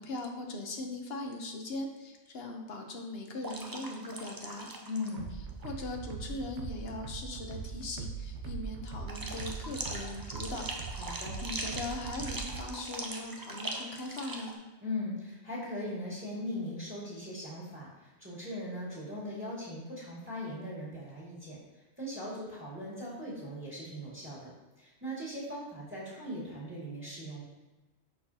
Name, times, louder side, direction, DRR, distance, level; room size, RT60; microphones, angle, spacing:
voice 1, 0.0-4.7 5.6-10.7 10.9-14.6, left 2 dB, 65° left, 3 dB, 1.0 m, -40 dB
sound 1, 3.4-5.2 5.5-5.7 9.1-14.5, right 2 dB, 25° right, 0.5 m, -40 dB
voice 2, 4.9-5.3 11.0-11.4 14.8-21.6 22.0-24.5 24.8-27.4, left 1 dB, 10° right, -7 dB, 1.9 m, -39 dB
sound 2, 5.2-12.7, right 5 dB, 80° right, 0.9 m, -41 dB
11.0 x 4.2 x 2.8 m, 1.1 s
omnidirectional pair, 1.1 m